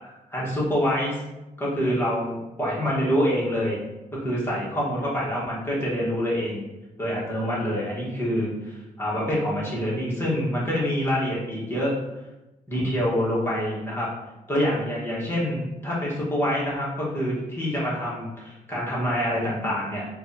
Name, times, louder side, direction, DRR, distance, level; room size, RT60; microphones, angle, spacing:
voice 1, 0.0-1.2 1.6-3.8 4.1-6.7 7.0-12.0 12.7-14.1 14.5-20.1, equal, 15° left, -7 dB, 1.4 m, -26 dB
4.6 x 2.4 x 2.8 m, 1.0 s
cardioid pair, 125°, 15 cm